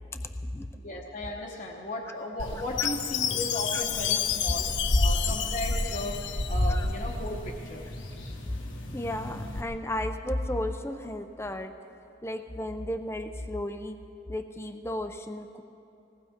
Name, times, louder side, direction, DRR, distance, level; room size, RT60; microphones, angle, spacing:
voice 1, 0.8-6.2 6.5-7.8, left 1 dB, 40° left, 0 dB, 0.9 m, -36 dB
sound 1, 2.4-9.6, left 1 dB, 85° left, 1.5 m, -32 dB
Chime, 2.8-6.9, left 10 dB, 70° left, 0.6 m, -31 dB
voice 2, 8.9-11.7 12.2-14.0 14.3-15.6, left 1 dB, 15° left, 7 dB, 0.5 m, -34 dB
20.5 x 18.0 x 3.6 m, 2.7 s
head